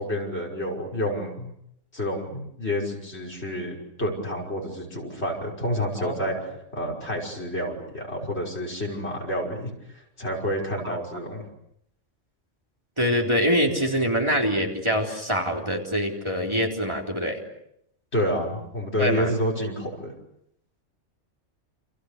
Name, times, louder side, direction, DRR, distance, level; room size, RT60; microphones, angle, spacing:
voice 1, 0.0-1.5 1.9-11.4 18.1-20.1, equal, 60° left, 1 dB, 6.1 m, -29 dB
voice 2, 13.0-17.4 19.0-19.3, equal, 25° right, 0 dB, 3.9 m, -24 dB
29.5 x 28.0 x 6.7 m, 0.77 s
omnidirectional pair, 1.3 m